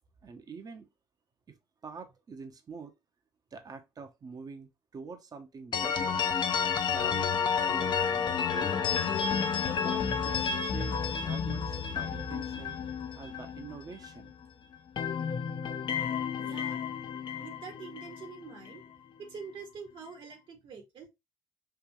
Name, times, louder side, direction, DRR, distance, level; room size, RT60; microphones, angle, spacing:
voice 1, 0.2-0.9 1.5-2.9 3.5-6.2 6.9-8.9 9.7-11.0 11.2-12.8 13.1-14.3, right 5 dB, 40° right, 1.1 m, -46 dB
sound 1, 5.7-14.5 14.7-18.9, left 6 dB, 55° left, 0.8 m, -31 dB
voice 2, 16.4-16.8 17.4-18.8 19.2-21.1, right 5 dB, 60° right, 1.9 m, -45 dB
5.8 x 2.7 x 3.2 m
hypercardioid pair, 60°, 10 cm